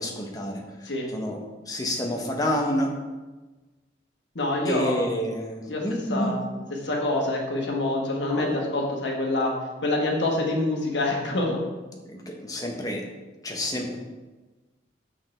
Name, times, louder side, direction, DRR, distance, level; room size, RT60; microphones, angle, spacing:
voice 1, 0.0-1.4 1.7-2.9 4.6-6.4 8.3-8.5 12.1-13.1 13.4-14.0, equal, 20° left, 0 dB, 0.9 m, -29 dB
voice 2, 4.3-5.1 5.7-6.4 6.8-9.5 9.8-11.6, left 2 dB, 65° left, 0 dB, 1.3 m, -26 dB
6.5 x 6.1 x 3.3 m, 1.2 s
head